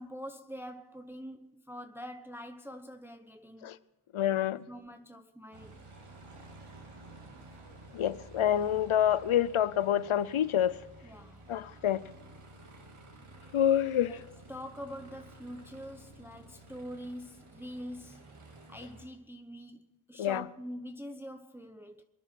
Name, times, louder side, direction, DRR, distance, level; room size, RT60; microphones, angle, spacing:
voice 1, 0.0-3.7 4.7-5.8 11.0-11.4 14.1-14.2 14.5-18.2 18.7-19.8 20.1-22.0, equal, 5° right, 0.9 m, -44 dB
voice 2, 4.1-4.6 7.9-10.8 11.5-12.0 13.5-14.2 20.2-20.4, left 10 dB, 80° left, 0.6 m, -27 dB
Aircraft, 5.5-19.1, right 2 dB, 90° right, 2.3 m, -52 dB
23.5 x 10.0 x 5.8 m
cardioid pair, 40°, 49 cm